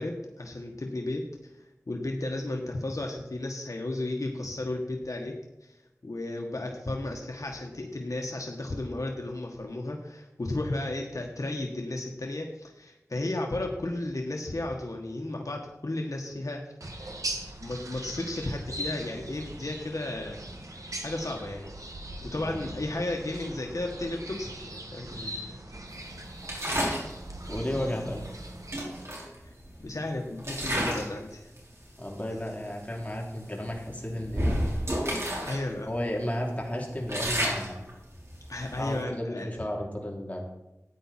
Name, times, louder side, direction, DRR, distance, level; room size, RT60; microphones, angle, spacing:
voice 1, 0.0-5.3 5.6-17.1 17.6-20.4 21.0-21.7 22.2-25.7 29.4-29.5 29.8-31.5 35.1-35.9 38.5-39.6, left 2 dB, 75° left, 1 dB, 1.4 m, -34 dB
sound 1, 16.8-29.0, right 1 dB, 75° right, 1.6 m, -40 dB
voice 2, 22.4-22.8 25.1-25.3 27.5-28.2 32.0-34.6 35.8-37.8 38.7-40.4, left 1 dB, 25° left, -1 dB, 3.1 m, -33 dB
sound 2, 26.4-27.1 28.2-28.3 28.7-29.9 30.4-31.2 31.5-31.8 32.5-32.6 32.9-33.1 33.7-35.6 35.9-36.0 36.5-39.0, equal, 50° right, 4.7 m, -31 dB
14.0 x 9.6 x 4.3 m, 0.92 s
wide cardioid pair, 50°, 6 cm